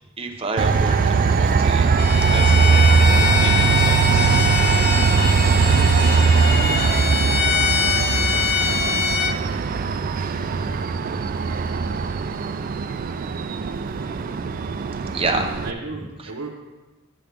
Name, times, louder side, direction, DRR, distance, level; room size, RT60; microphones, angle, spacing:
voice 1, 0.2-1.9 2.3-4.3 15.1-15.5, right 3 dB, 25° right, 3 dB, 0.7 m, -30 dB
Train, 0.6-15.7, right 5 dB, 40° right, 0.3 m, -20 dB
Bowed string instrument, 2.0-9.4, left 8 dB, 50° left, 0.4 m, -24 dB
voice 2, 8.0-9.5 15.6-16.5, right 3 dB, 85° right, -3 dB, 0.8 m, -37 dB
7.5 x 7.0 x 3.4 m, 1.1 s
head